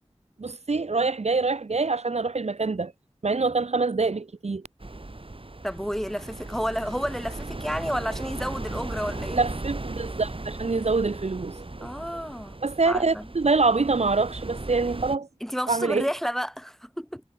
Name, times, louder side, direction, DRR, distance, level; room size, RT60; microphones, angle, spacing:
voice 1, 0.4-2.9 3.2-4.6 9.3-11.9 12.6-15.3 15.7-16.1, right 3 dB, 70° right, 0.8 m, -25 dB
sound 1, 4.8-15.2, right 2 dB, 50° right, 4.5 m, -37 dB
voice 2, 5.6-9.4 11.8-12.6 12.9-13.3 15.4-17.2, equal, 5° left, 1.8 m, -31 dB
wide cardioid pair, 40°, 11 cm